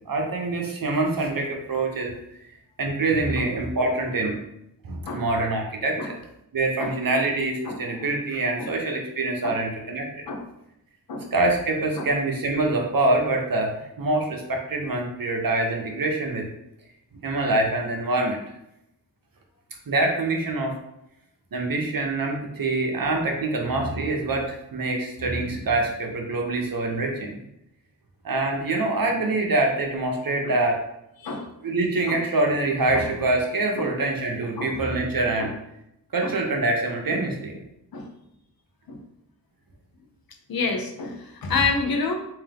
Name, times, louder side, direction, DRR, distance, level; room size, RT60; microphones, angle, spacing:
voice 1, 0.0-2.1 2.8-4.4 4.8-6.2 6.5-10.2 11.3-16.5 17.2-18.4 19.9-20.7 21.5-27.4 28.2-30.8 31.6-35.5 36.1-37.6, right 2 dB, 60° right, 1 dB, 0.9 m, -25 dB
voice 2, 40.5-42.1, left 4 dB, 65° left, 3 dB, 0.7 m, -28 dB
3.6 x 2.8 x 3.4 m, 0.80 s
cardioid pair, 60°, 39 cm